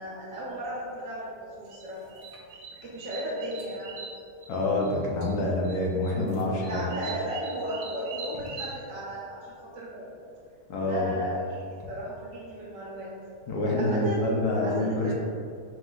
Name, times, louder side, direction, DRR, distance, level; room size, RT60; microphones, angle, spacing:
voice 1, 0.0-2.0 2.8-4.0 6.7-10.1 10.8-13.1 13.8-14.3 14.6-15.1, right 1 dB, 55° right, -6 dB, 1.2 m, -35 dB
sound 1, 1.7-4.9 5.2-5.8 6.0-8.8, right 5 dB, 85° right, 1.2 m, -42 dB
voice 2, 4.5-6.9 10.7-11.1 13.5-15.1, left 2 dB, 75° left, -2 dB, 1.2 m, -26 dB
4.8 x 2.1 x 3.9 m, 2.3 s
omnidirectional pair, 1.7 m